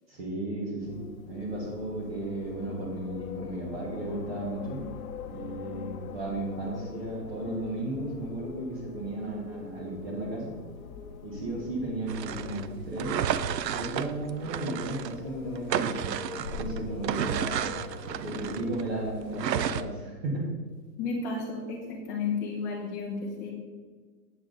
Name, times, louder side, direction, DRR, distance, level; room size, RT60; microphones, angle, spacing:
voice 1, 0.1-1.0 1.3-4.8 5.3-10.5 11.2-13.2 13.7-17.7 18.2-20.5, right 2 dB, 40° right, -5 dB, 1.6 m, -34 dB
Wind, 0.8-19.8, left 5 dB, 55° left, 0.8 m, -43 dB
sound 1, 12.1-15.2 15.6-18.9 19.3-19.8, right 9 dB, 75° right, 0.7 m, -32 dB
voice 2, 21.0-23.5, left 4 dB, 10° left, -3 dB, 0.7 m, -32 dB
8.5 x 7.2 x 3.9 m, 1.5 s
hypercardioid pair, 170°, 50 cm